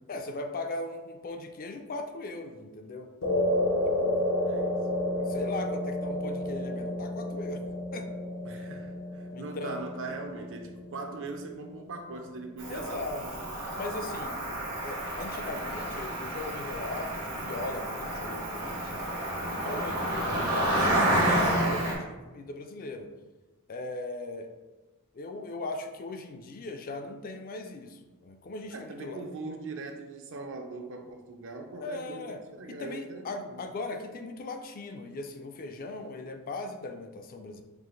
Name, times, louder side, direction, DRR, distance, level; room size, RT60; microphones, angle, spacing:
voice 1, 0.1-3.1 4.0-4.3 5.1-7.6 7.9-8.1 8.6-8.7 9.3-9.8 12.7-13.2 13.7-19.0 19.5-23.1 23.7-24.5 25.1-29.2 31.7-32.4 32.7-37.6, left 2 dB, 40° left, 6 dB, 0.4 m, -38 dB
sound 1, 3.2-11.7, left 1 dB, 90° left, 0.7 m, -31 dB
voice 2, 4.5-4.8 8.4-13.5 28.7-33.6, right 3 dB, 60° right, 4 dB, 0.5 m, -41 dB
Cricket, 12.6-21.9, right 1 dB, 80° right, 1.4 m, -30 dB
4.6 x 2.5 x 3.8 m, 1.2 s
head